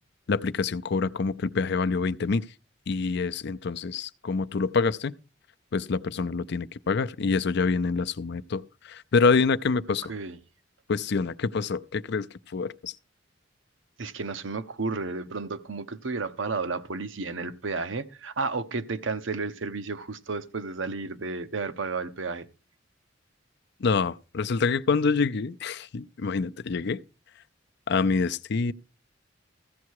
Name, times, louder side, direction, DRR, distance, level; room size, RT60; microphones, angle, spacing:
voice 1, 0.3-2.5 2.9-5.1 5.7-10.1 10.9-12.3 12.5-12.9 23.8-27.0 27.9-28.7, left 4 dB, 60° left, 0.5 m, -26 dB
voice 2, 14.0-22.5, right 4 dB, 75° right, 0.9 m, -32 dB
15.0 x 8.3 x 4.7 m
head